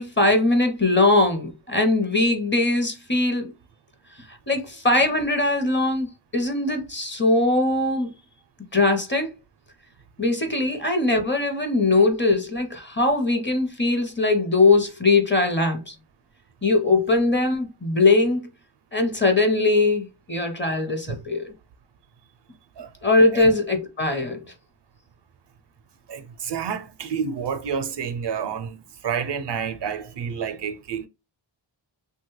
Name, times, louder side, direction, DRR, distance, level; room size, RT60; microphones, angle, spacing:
voice 1, 0.0-3.5 4.5-6.1 6.3-8.1 8.7-9.3 10.2-15.9 16.6-18.4 18.9-21.5 23.0-24.4, left 2 dB, 25° left, 0.7 m, -21 dB
voice 2, 26.1-28.8 29.0-31.1, right 7 dB, 60° right, 0.5 m, -29 dB
3.0 x 2.2 x 3.0 m
cardioid pair, 55°, 48 cm